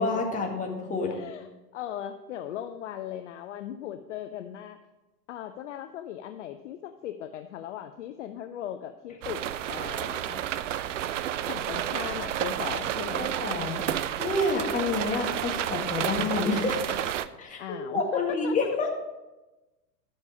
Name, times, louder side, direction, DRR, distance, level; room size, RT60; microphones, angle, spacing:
voice 1, 0.0-1.1 13.1-17.1 17.4-18.9, left 3 dB, 15° left, 0 dB, 1.8 m, -29 dB
voice 2, 1.1-1.5 1.7-4.8 5.3-9.4 9.7-10.4 11.5-13.3 17.6-18.8, left 10 dB, 50° left, 9 dB, 0.6 m, -38 dB
sound 1, 9.2-17.3, right 11 dB, 50° right, 0.5 m, -31 dB
11.5 x 6.4 x 5.0 m, 1.1 s
figure-of-eight pair, 105°, 49 cm